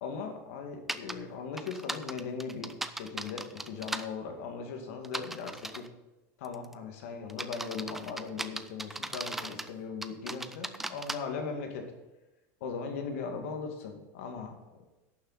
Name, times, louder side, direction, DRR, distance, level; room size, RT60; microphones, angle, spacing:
voice 1, 0.0-5.9 6.4-11.9 12.6-14.5, left 5 dB, 70° left, 4 dB, 2.2 m, -39 dB
sound 1, 0.9-1.1 1.6-4.1 5.0-5.9 6.4-6.7 7.3-9.7 10.0-11.2, right 2 dB, 5° right, 0.3 m, -37 dB
11.5 x 6.9 x 5.7 m, 1.1 s
supercardioid pair, 175°, 8 cm